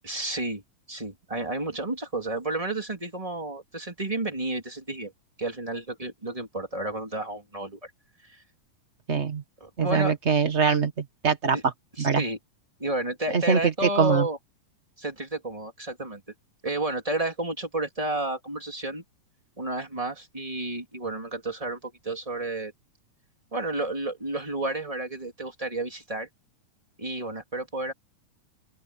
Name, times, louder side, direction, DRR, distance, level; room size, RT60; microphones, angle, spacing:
voice 1, 0.0-0.6 0.9-5.1 5.4-7.9 8.2-8.4 9.6-10.1 11.5-11.6 12.0-12.4 12.8-14.4 15.0-16.2 16.6-19.0 19.6-22.7 23.5-26.3 27.0-27.9, right 2 dB, 10° right, 3.2 m, -31 dB
voice 2, 9.1-9.4 9.8-10.9 11.2-11.6 12.0-12.2 13.3-13.6 14.0-14.3, right 6 dB, 65° right, 0.6 m, -22 dB
open air
omnidirectional pair, 3.8 m